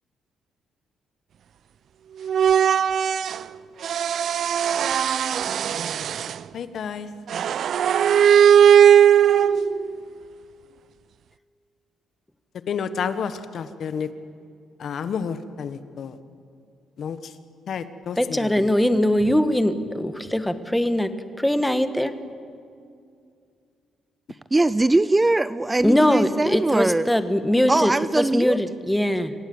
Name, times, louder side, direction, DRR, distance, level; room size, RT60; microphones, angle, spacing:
sound 1, 2.2-3.4 3.8-6.4 7.3-9.9, right 8 dB, 65° right, 0.5 m, -18 dB
voice 1, 6.5-7.1 12.7-14.1 14.8-16.2 17.0-17.2 17.7-18.7, left 7 dB, 60° left, 12 dB, 1.3 m, -30 dB
voice 2, 18.2-22.1 25.8-29.3, left 1 dB, 5° left, 10 dB, 1.4 m, -21 dB
voice 3, 24.5-27.1 27.7-28.6, right 2 dB, 15° right, 16 dB, 0.5 m, -21 dB
26.5 x 17.0 x 7.9 m, 2.4 s
cardioid pair, 90°, 0 cm